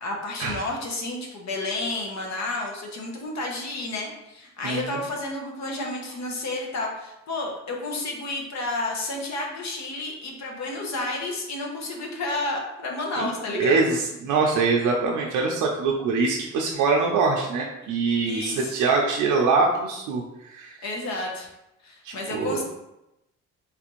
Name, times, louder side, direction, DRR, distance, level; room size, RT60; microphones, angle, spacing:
voice 1, 0.0-13.8 17.8-18.8 20.8-21.5 21.8-22.6, left 2 dB, 65° left, 0 dB, 0.9 m, -31 dB
voice 2, 4.6-5.0 13.2-13.3 13.5-20.8 22.0-22.6, right 4 dB, 85° right, 0 dB, 0.5 m, -24 dB
3.3 x 2.5 x 3.0 m, 0.89 s
cardioid pair, 90°, 30 cm